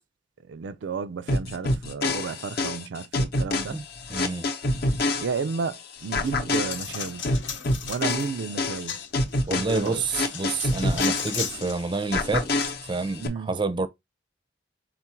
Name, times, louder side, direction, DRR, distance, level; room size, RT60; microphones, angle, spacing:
voice 1, 0.5-3.8 5.2-7.3 7.9-8.9 9.5-10.0 13.2-13.5, right 5 dB, 80° right, 0.4 m, -32 dB
sound 1, 1.3-5.7 6.1-11.7 12.1-13.3, left 2 dB, 55° left, 0.7 m, -27 dB
voice 2, 4.1-4.5 9.5-12.5 12.9-13.9, right 3 dB, 25° right, 0.5 m, -28 dB
Coin (dropping), 6.0-12.7, left 7 dB, 90° left, 0.8 m, -37 dB
3.8 x 2.4 x 4.3 m
head